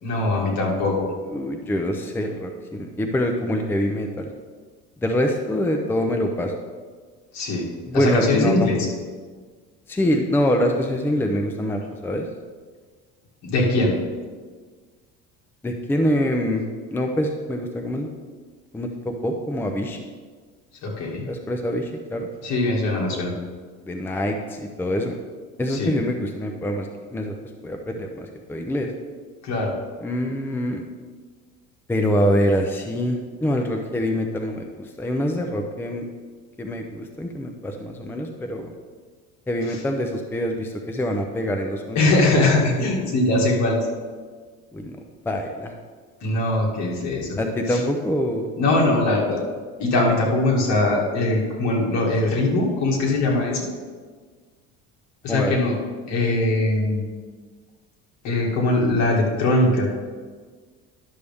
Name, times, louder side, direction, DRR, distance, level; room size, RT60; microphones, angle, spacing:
voice 1, 0.0-1.1 7.3-7.7 7.9-8.9 13.4-13.9 20.8-21.3 22.4-23.3 25.7-26.0 29.4-29.7 39.7-39.8 42.0-43.8 46.2-47.4 47.7-47.8 48.6-49.5 49.8-53.7 55.2-55.7 56.1-57.1 58.2-59.9, left 2 dB, 65° left, -2 dB, 2.2 m, -21 dB
voice 2, 1.3-4.3 5.0-6.5 7.9-8.7 9.9-12.3 15.6-16.6 16.9-18.1 18.7-20.0 21.3-22.3 23.8-25.2 25.6-27.3 27.6-28.9 30.0-30.8 31.9-36.1 36.6-38.7 39.5-42.0 44.7-45.0 45.3-45.7 47.4-48.5 55.3-55.6, equal, 5° left, 4 dB, 0.5 m, -25 dB
11.0 x 6.7 x 3.5 m, 1.5 s
cardioid pair, 135°, 31 cm